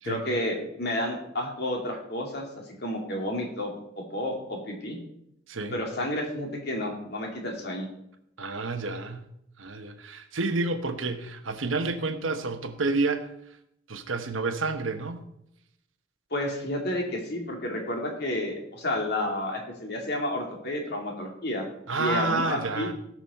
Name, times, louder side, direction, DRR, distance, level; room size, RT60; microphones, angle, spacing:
voice 1, 0.1-5.0 5.7-7.9 16.3-21.7 22.0-22.9, left 1 dB, 55° left, 1 dB, 2.5 m, -31 dB
voice 2, 5.5-5.8 8.4-9.3 9.6-13.3 13.9-15.2 21.9-22.9, right 3 dB, 90° right, 8 dB, 1.1 m, -29 dB
18.0 x 6.3 x 4.2 m, 0.78 s
head